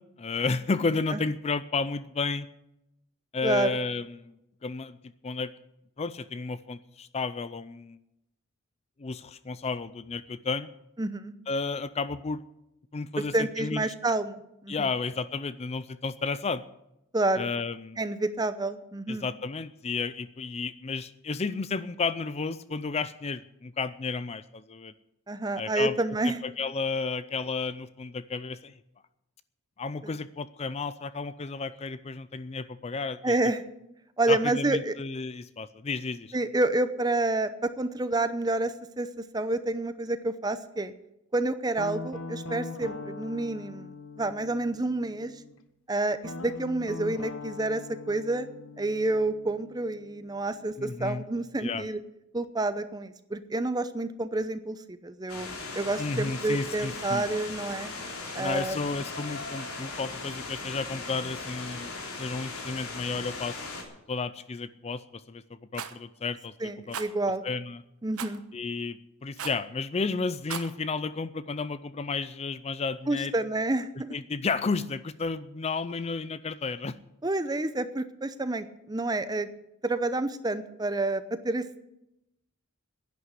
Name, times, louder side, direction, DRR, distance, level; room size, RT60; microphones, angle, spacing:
voice 1, 0.2-2.5 3.3-4.4 4.6-5.5 6.0-8.0 9.0-10.7 11.5-12.4 12.9-13.9 14.7-16.6 17.4-18.0 19.1-24.9 25.6-26.0 26.2-28.8 29.8-33.3 34.3-36.4 50.8-51.2 51.6-51.9 56.0-57.3 58.4-61.9 62.2-63.6 64.1-65.4 65.7-66.5 66.9-67.0 67.4-67.8 68.5-73.3 74.1-76.9, left 4 dB, 30° left, 15 dB, 0.4 m, -32 dB
voice 2, 3.4-3.8 11.0-11.3 13.3-14.7 17.1-17.5 18.0-19.3 25.3-26.4 30.0-30.2 33.2-33.6 34.2-35.0 36.3-40.9 41.3-45.3 45.9-48.5 48.8-52.0 52.3-55.5 55.7-57.9 58.3-58.8 66.6-67.4 68.0-68.4 73.1-74.1 77.2-79.5 79.8-81.6, right 2 dB, 20° right, 12 dB, 0.7 m, -29 dB
Guitar, 41.8-45.5 46.2-51.0, left 3 dB, 70° left, 1.2 m, -42 dB
sound 1, 55.3-63.8, left 3 dB, 90° left, 3.4 m, -38 dB
Rattle, 65.7-66.0 66.9-67.1 68.2-68.4 69.4-69.7 70.3-70.7, right 7 dB, 85° right, 1.1 m, -36 dB
11.0 x 9.4 x 9.9 m, 0.86 s
head